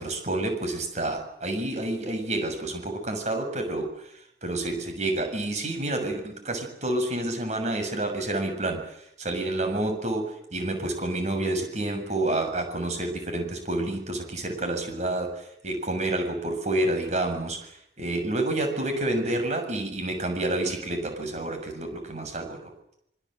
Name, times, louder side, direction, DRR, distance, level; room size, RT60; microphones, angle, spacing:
voice 1, 0.0-22.7, right 2 dB, 40° right, 5 dB, 7.4 m, -29 dB
26.5 x 24.5 x 8.1 m, 0.76 s
head